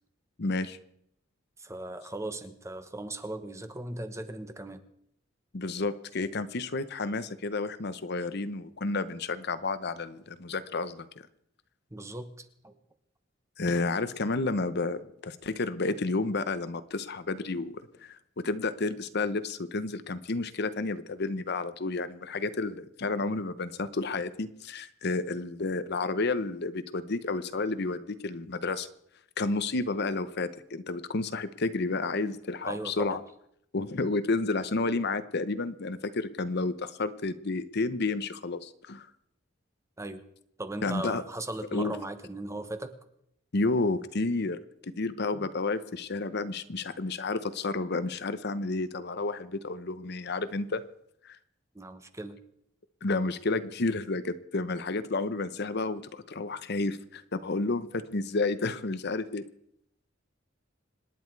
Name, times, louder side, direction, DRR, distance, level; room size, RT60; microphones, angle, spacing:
voice 1, 0.4-0.8 5.5-11.3 13.6-17.7 18.0-28.9 29.4-33.2 33.7-39.1 40.8-41.2 41.7-41.9 43.5-50.8 51.2-51.4 53.0-59.4, left 3 dB, 60° left, 13 dB, 0.9 m, -31 dB
voice 2, 1.6-4.8 11.9-12.8 32.6-33.2 40.0-40.2 40.6-43.0 51.7-52.4, right 2 dB, 15° right, 9 dB, 1.2 m, -38 dB
26.5 x 10.5 x 4.7 m, 0.72 s
head